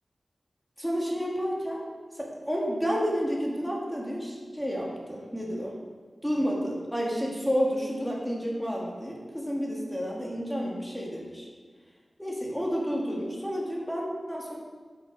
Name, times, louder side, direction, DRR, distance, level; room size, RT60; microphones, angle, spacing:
voice 1, 0.8-1.8 2.2-5.8 6.2-11.5 12.2-14.5, equal, 5° left, -3 dB, 2.2 m, -30 dB
10.5 x 5.9 x 4.8 m, 1.5 s
wide cardioid pair, 80°, 0 cm